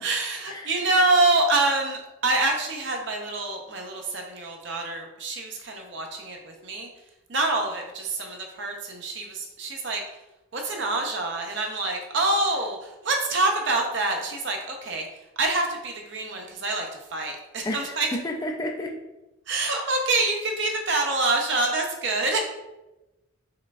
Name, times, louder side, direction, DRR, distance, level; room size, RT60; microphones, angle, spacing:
voice 1, 0.0-6.9 7.3-10.0 10.5-15.1 15.4-18.1 19.5-22.5, right 2 dB, 55° right, 2 dB, 0.6 m, -26 dB
voice 2, 17.6-18.0 18.2-19.0, left 1 dB, 20° left, 2 dB, 0.3 m, -31 dB
4.8 x 3.1 x 2.3 m, 0.98 s
head